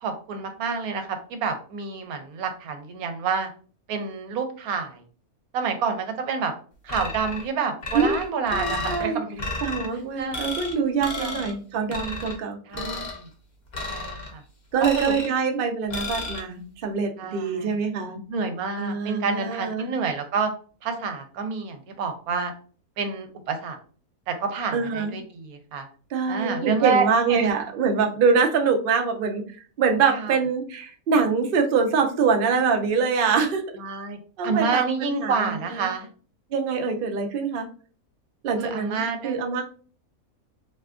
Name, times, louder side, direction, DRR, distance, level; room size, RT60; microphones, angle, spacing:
voice 1, 0.0-3.5 3.9-5.0 5.5-6.5 6.8-9.5 10.2-10.5 11.2-11.4 12.7-13.3 13.8-14.4 14.8-15.1 17.2-17.8 18.3-20.5 20.8-22.5 23.0-23.8 24.3-25.9 26.2-27.5 30.1-30.4 33.8-36.1 38.6-39.4, right 5 dB, 85° right, 6 dB, 1.1 m, -28 dB
sound 1, 6.9-7.5 7.8-9.0 9.4-9.9 10.3-10.7 11.0-11.5 11.9-12.4 12.7-13.2 13.7-14.3 14.8-15.4 15.9-16.4, left 3 dB, 40° left, 0.6 m, -32 dB
voice 2, 8.5-9.2 9.6-13.0 14.7-18.2 18.8-19.9 24.7-25.1 26.1-29.4 29.8-33.6 34.4-35.8 36.5-37.7 38.4-39.6, right 5 dB, 65° right, 4 dB, 0.5 m, -24 dB
3.3 x 2.7 x 2.4 m, 0.41 s
omnidirectional pair, 1.6 m